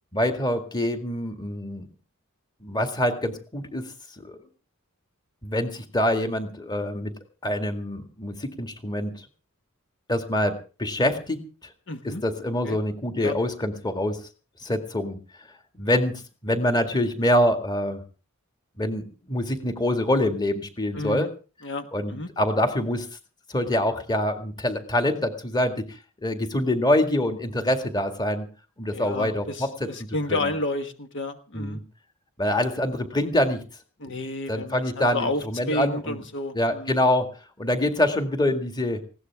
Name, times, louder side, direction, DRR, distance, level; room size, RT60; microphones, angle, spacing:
voice 1, 0.1-1.9 2.6-3.9 4.2-4.4 5.4-7.1 7.4-9.2 10.1-11.4 12.0-14.2 14.6-15.2 15.7-18.0 18.8-21.3 21.9-23.1 23.5-28.5 28.8-29.9 30.3-30.5 31.5-31.8 32.4-33.6 34.0-34.2 34.5-36.2 36.5-37.3 37.6-39.0, left 1 dB, 20° left, 6 dB, 2.0 m, -25 dB
voice 2, 11.9-12.2 12.7-12.8 13.2-13.3 20.9-21.3 21.6-22.3 28.9-31.8 34.0-36.9, left 2 dB, 60° left, 7 dB, 1.3 m, -31 dB
20.0 x 16.5 x 3.6 m, 0.35 s
head